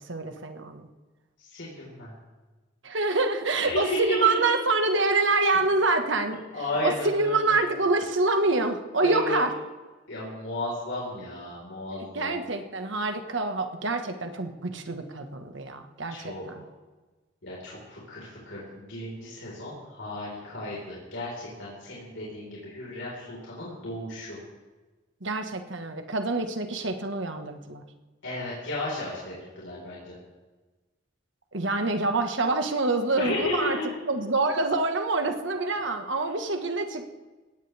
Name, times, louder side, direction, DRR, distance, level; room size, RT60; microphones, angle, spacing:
voice 1, 0.1-0.9 2.8-6.4 6.8-9.5 12.0-16.6 25.2-27.8 31.5-33.8 34.1-37.2, right 3 dB, 70° right, 6 dB, 1.5 m, -26 dB
voice 2, 1.4-2.1 3.6-4.4 6.2-7.6 9.0-9.4 10.1-12.3 16.1-16.5 17.4-24.4 28.2-30.1 33.1-33.9, left 2 dB, 75° left, -6 dB, 4.6 m, -34 dB
21.0 x 17.0 x 3.5 m, 1.2 s
head